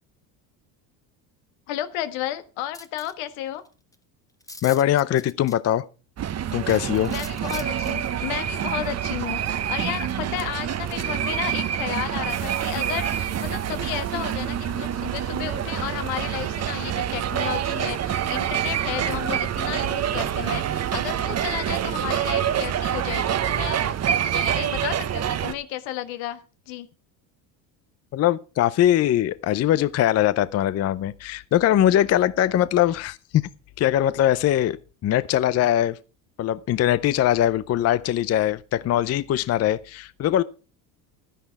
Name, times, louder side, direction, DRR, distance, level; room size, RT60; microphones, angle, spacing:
voice 1, 1.7-3.6 7.1-26.4 26.7-26.9 32.0-32.2, left 13 dB, 70° left, 1.6 m, -33 dB
sound 1, 2.7-3.1 3.7-3.8 3.9-4.0 4.4-5.8 6.7-7.9, left 2 dB, 5° left, 1.1 m, -42 dB
voice 2, 4.6-5.9 6.5-7.1 28.1-33.5 33.8-34.8 35.0-36.0 36.4-40.4, left 12 dB, 35° left, 0.5 m, -21 dB
sound 2, 6.2-25.5, right 10 dB, 30° right, 0.9 m, -26 dB
11.5 x 10.0 x 4.6 m
supercardioid pair, 95°, 48 cm